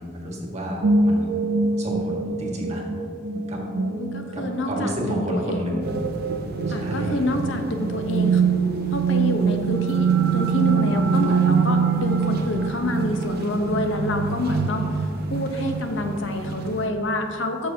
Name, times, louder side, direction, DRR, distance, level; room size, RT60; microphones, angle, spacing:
voice 1, 0.0-2.8 3.5-3.6 4.3-5.9 6.7-7.3, equal, 40° right, -2 dB, 1.8 m, -31 dB
sound 1, 0.8-17.0, right 5 dB, 80° right, 0.5 m, -24 dB
voice 2, 3.6-5.8 6.7-8.4 8.9-14.9 15.3-17.7, left 1 dB, 90° left, 5 dB, 1.0 m, -27 dB
sound 2, 5.8-16.9, equal, 55° right, 1.0 m, -40 dB
13.5 x 6.8 x 2.9 m, 2.5 s
head